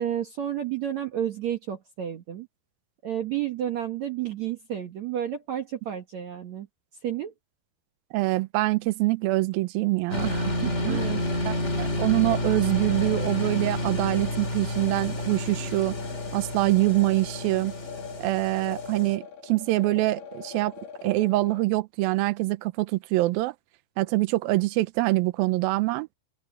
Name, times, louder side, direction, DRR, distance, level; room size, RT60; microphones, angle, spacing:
voice 1, 0.0-2.5 3.0-6.7 7.0-7.3 10.8-11.2, right 10 dB, 60° right, 2.0 m, -31 dB
voice 2, 8.1-11.1 11.5-16.0 16.3-17.7 18.2-20.7 21.0-23.5 24.0-26.1, right 19 dB, 80° right, 2.2 m, -25 dB
sound 1, 10.1-19.1, left 1 dB, 20° left, 2.6 m, -30 dB
sound 2, 12.3-21.6, left 7 dB, 90° left, 5.5 m, -42 dB
open air
omnidirectional pair, 5.0 m